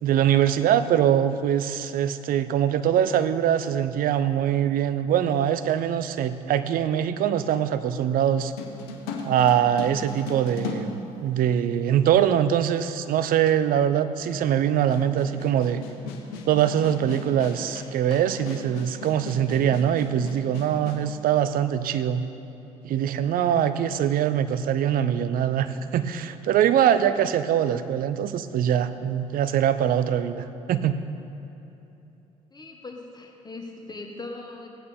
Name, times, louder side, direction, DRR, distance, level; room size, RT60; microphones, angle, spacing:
voice 1, 0.0-8.5 9.2-15.8 16.5-22.2 22.8-31.0, right 9 dB, 55° right, 12 dB, 0.6 m, -23 dB
sound 1, 8.6-11.8 12.6-12.7 14.9-21.0, left 4 dB, 75° left, 1.2 m, -37 dB
voice 2, 32.5-34.7, left 3 dB, 25° left, 1 dB, 1.3 m, -39 dB
16.0 x 8.9 x 3.5 m, 2.9 s
hypercardioid pair, 55°, 17 cm